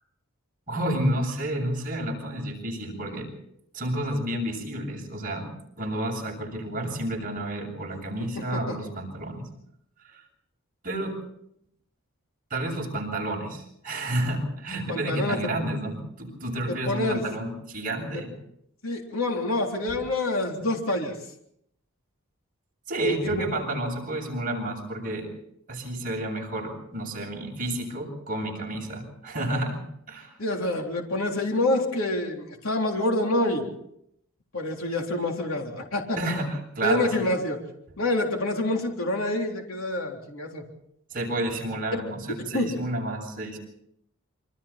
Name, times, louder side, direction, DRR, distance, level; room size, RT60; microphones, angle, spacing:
voice 1, 0.7-3.3 3.7-5.5 5.8-9.5 10.0-10.2 10.8-11.2 12.5-18.3 20.6-20.7 22.9-25.3 25.7-30.3 36.2-37.3 41.1-43.6, right 1 dB, 40° right, 0 dB, 7.7 m, -30 dB
voice 2, 8.4-8.8 14.9-15.5 16.7-17.2 18.1-18.2 18.8-21.1 23.0-23.4 30.4-33.7 34.5-36.2 36.8-37.6 38.0-40.6 41.9-42.0 42.5-42.8, left 2 dB, 70° left, 0 dB, 3.7 m, -27 dB
27.5 x 25.0 x 4.4 m, 0.75 s
head